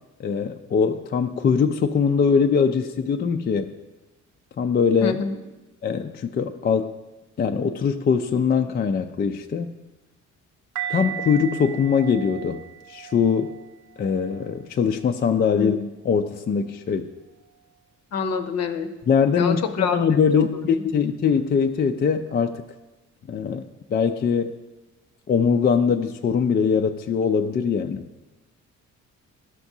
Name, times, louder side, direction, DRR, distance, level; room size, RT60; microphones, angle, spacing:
voice 1, 0.2-3.7 4.6-5.2 5.8-6.9 7.4-9.7 10.9-12.6 12.9-13.6 14.0-15.8 16.0-17.1 19.1-22.6 23.3-23.6 23.9-24.6 25.3-28.0, left 6 dB, 35° left, 6 dB, 0.4 m, -22 dB
voice 2, 5.0-5.4 15.5-15.9 18.1-18.9 19.3-20.0 20.3-20.7, left 5 dB, 60° left, 7 dB, 0.7 m, -27 dB
sound 1, 10.8-15.7 16.3-16.5, right 11 dB, 85° right, 0.8 m, -37 dB
12.0 x 5.9 x 2.7 m, 1.1 s
cardioid pair, 90°, 30 cm